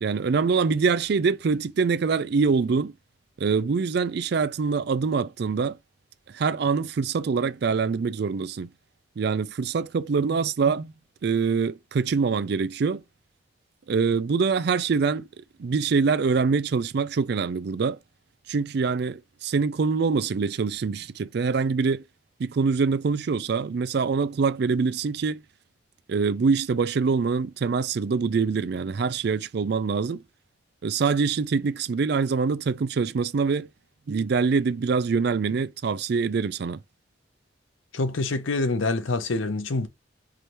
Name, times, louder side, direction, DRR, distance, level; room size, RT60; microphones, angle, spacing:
voice 1, 0.0-2.9 3.4-5.8 6.3-8.7 9.2-10.9 11.2-13.0 13.9-15.3 15.6-18.0 18.5-22.0 22.4-25.4 26.1-30.2 30.8-33.7 34.1-36.8, right 5 dB, 55° right, 0.4 m, -24 dB
voice 2, 37.9-39.9, left 3 dB, 85° left, 0.7 m, -26 dB
4.8 x 3.0 x 2.6 m
head